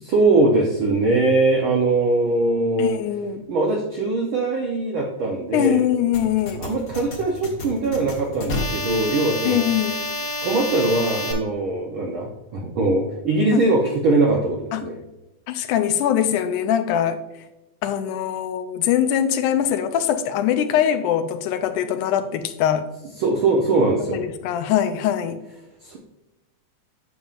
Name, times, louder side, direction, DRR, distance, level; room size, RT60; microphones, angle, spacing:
voice 1, 0.0-2.9 3.5-5.8 6.6-9.6 10.4-15.0 23.2-24.2 25.8-26.0, right 2 dB, 75° right, 1.1 m, -21 dB
voice 2, 2.8-3.5 5.5-6.7 9.5-10.0 13.5-13.6 14.7-14.9 15.5-17.2 17.8-22.9 24.1-25.4, left 10 dB, 90° left, 2.1 m, -22 dB
sound 1, 6.1-11.3, left 1 dB, 45° left, 1.3 m, -29 dB
8.8 x 7.1 x 2.5 m
omnidirectional pair, 3.5 m